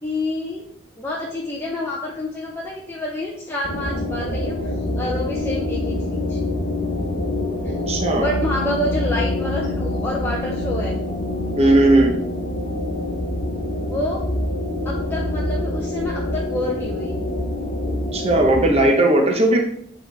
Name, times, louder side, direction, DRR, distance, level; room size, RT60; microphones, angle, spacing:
voice 1, 0.0-0.6 1.0-6.4 7.6-7.8 8.1-11.0 13.8-14.2 14.8-17.2, left 1 dB, 10° left, -4 dB, 0.7 m, -28 dB
sound 1, 3.6-18.8, left 1 dB, 40° left, 1.1 m, -25 dB
voice 2, 7.7-8.3 11.6-12.1 17.8-19.6, right 1 dB, 30° right, 1 dB, 1.0 m, -17 dB
8.3 x 4.2 x 3.4 m, 0.68 s
head